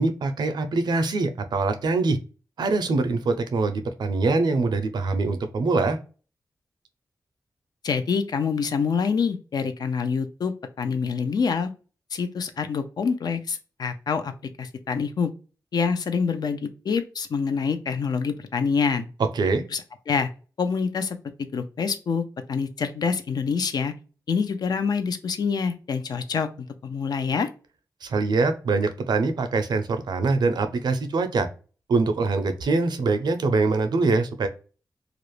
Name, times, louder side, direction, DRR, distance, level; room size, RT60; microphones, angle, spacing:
voice 1, 0.0-2.2 2.6-6.0 19.2-19.7 28.0-31.5 31.9-34.5, right 3 dB, 80° right, 8 dB, 0.5 m, -23 dB
voice 2, 7.8-11.7 12.1-14.3 14.6-15.3 15.7-19.1 19.7-19.8 20.1-20.3 20.6-21.2 21.5-23.9 24.3-26.5 26.8-27.5, left 5 dB, 70° left, 9 dB, 0.4 m, -26 dB
2.4 x 2.0 x 3.0 m, 0.36 s
wide cardioid pair, 90°, 7 cm